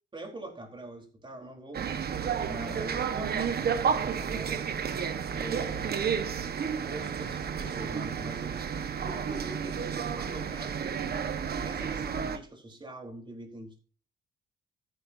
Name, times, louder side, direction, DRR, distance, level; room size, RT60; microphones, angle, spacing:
voice 1, 0.1-5.0 5.3-6.3 6.8-13.8, right 1 dB, 25° right, 4.3 m, -44 dB
sound 1, 1.7-12.4, right 7 dB, 50° right, 1.5 m, -31 dB
13.5 x 10.5 x 2.8 m
cardioid pair, 90°, 20 cm